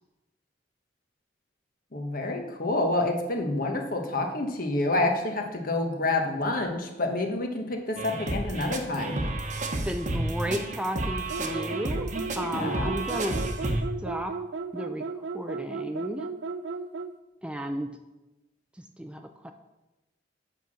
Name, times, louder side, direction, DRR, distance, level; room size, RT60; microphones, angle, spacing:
voice 1, 1.9-9.2 12.5-12.9, left 2 dB, 50° left, 3 dB, 1.3 m, -28 dB
sound 1, 8.0-13.8, right 2 dB, 45° right, 1.0 m, -31 dB
voice 2, 9.8-12.1 12.3-13.5 14.0-14.4 14.7-15.1 15.3-16.3 17.4-18.0 18.8-19.5, equal, 5° right, 6 dB, 0.4 m, -33 dB
sound 2, 11.3-17.2, right 4 dB, 80° right, 0.5 m, -35 dB
8.1 x 6.0 x 6.2 m, 1.0 s
head